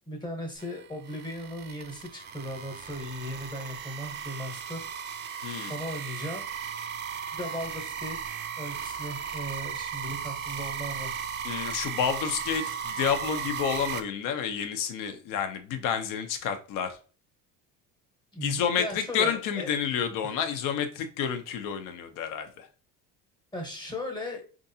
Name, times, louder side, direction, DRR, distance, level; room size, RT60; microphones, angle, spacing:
voice 1, 0.1-4.9 5.1-5.3 5.7-6.4 7.0-11.3 18.3-19.7 20.2-20.4 23.5-24.4, left 1 dB, 15° left, 1.0 m, -37 dB
sound 1, 0.6-14.0, right 7 dB, 35° right, 0.4 m, -36 dB
voice 2, 11.4-17.0 18.4-22.7, left 7 dB, 70° left, 0.7 m, -30 dB
4.5 x 2.5 x 2.7 m
cardioid pair, 145°, 34 cm